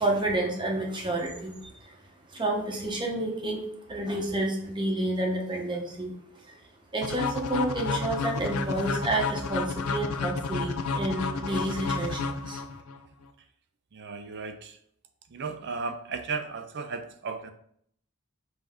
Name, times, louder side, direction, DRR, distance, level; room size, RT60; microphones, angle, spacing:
voice 1, 0.0-2.0 2.3-3.6 3.9-6.1 6.4-6.6 6.9-12.6, right 1 dB, 20° right, 0 dB, 0.8 m, -30 dB
sound 1, 7.0-13.0, left 4 dB, 75° left, 0.5 m, -31 dB
voice 2, 13.9-14.8 15.3-17.5, right 4 dB, 50° right, 8 dB, 0.5 m, -35 dB
5.5 x 2.7 x 3.5 m, 0.67 s
head